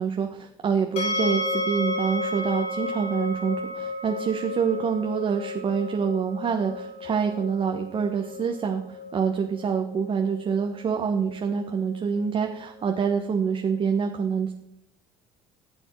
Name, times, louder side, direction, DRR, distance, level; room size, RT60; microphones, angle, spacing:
voice 1, 0.0-14.5, right 6 dB, 40° right, 3 dB, 1.3 m, -26 dB
sound 1, 1.0-13.9, left 2 dB, 50° left, 2.1 m, -34 dB
15.0 x 8.0 x 4.7 m, 0.77 s
hypercardioid pair, 60°, 13 cm